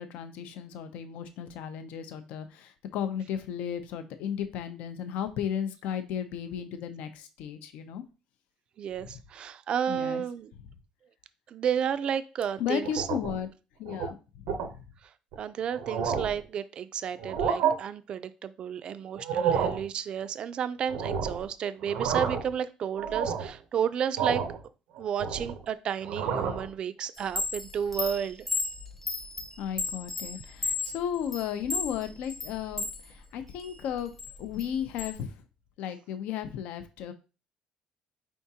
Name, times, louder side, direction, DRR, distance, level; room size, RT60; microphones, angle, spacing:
voice 1, 0.0-8.0 9.9-10.2 12.6-13.5 13.8-14.2 14.4-14.8 29.6-34.1 34.4-35.3 35.8-37.1, left 9 dB, 75° left, 0.5 m, -34 dB
voice 2, 8.8-10.5 11.5-13.1 15.0-24.4 25.0-28.5, right 8 dB, 45° right, 0.3 m, -32 dB
sound 1, 12.8-13.4 13.9-14.1 14.5-14.7 15.3-15.4 15.7-16.4 17.2-17.7 19.2-19.8 20.9-21.5 21.8-22.5 23.0-23.5 24.2-24.6 25.0-25.7 26.0-26.7, right 7 dB, 90° right, 0.6 m, -29 dB
Chime, 27.2-33.0 33.4-35.1, left 4 dB, 5° left, 0.6 m, -34 dB
4.6 x 3.5 x 2.8 m
cardioid pair, 135°, 2 cm